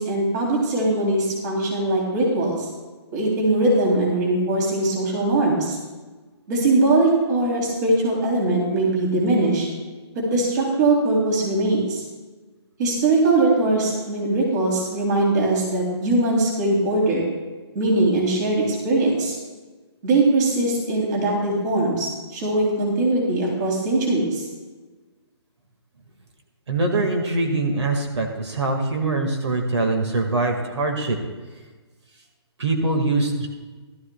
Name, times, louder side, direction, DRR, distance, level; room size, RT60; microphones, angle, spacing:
voice 1, 0.0-2.7 3.1-5.8 6.5-9.7 10.1-12.0 12.8-17.2 17.7-19.4 20.0-24.4, right 2 dB, 40° right, -2 dB, 3.2 m, -21 dB
voice 2, 26.7-31.2 32.6-33.5, right 2 dB, 80° right, 4 dB, 1.9 m, -23 dB
18.0 x 12.5 x 2.3 m, 1.3 s
hypercardioid pair, 150°, 14 cm